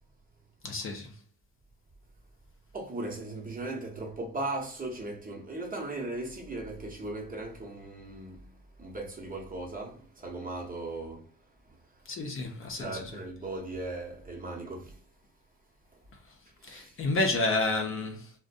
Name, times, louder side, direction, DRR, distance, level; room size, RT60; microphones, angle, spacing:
voice 1, 0.6-1.1 12.1-13.0 16.6-18.3, left 2 dB, 45° left, 0.6 m, -30 dB
voice 2, 2.7-12.1 12.8-15.0 15.9-16.0 16.5-17.0, right 2 dB, 30° right, 0.9 m, -38 dB
2.5 x 2.1 x 2.5 m
cardioid pair, 90°, 30 cm